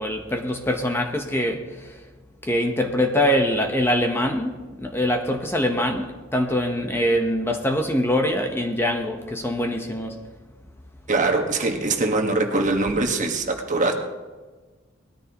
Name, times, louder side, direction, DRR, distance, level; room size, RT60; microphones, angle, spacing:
voice 1, 0.0-2.0 2.4-10.2, equal, 10° left, 0.9 m, -24 dB
voice 2, 11.1-13.9, right 3 dB, 40° right, 1.5 m, -22 dB
20.0 x 13.5 x 3.0 m
head